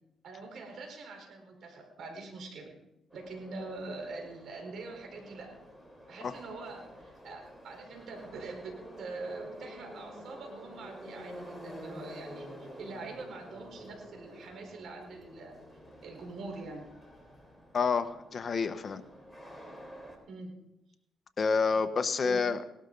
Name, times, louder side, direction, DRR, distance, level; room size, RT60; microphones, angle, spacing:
voice 1, 0.2-2.7 3.1-5.5 6.1-12.5 12.8-15.5 16.0-16.9 20.3-20.5 22.2-22.4, right 3 dB, 65° right, 2 dB, 4.4 m, -44 dB
Subway metro underground, 3.1-20.2, equal, 5° right, 3.8 m, -49 dB
voice 2, 17.7-19.0 21.4-22.6, left 5 dB, 40° left, 10 dB, 1.0 m, -28 dB
18.5 x 12.5 x 4.0 m, 0.89 s
cardioid pair, 90°, 0 cm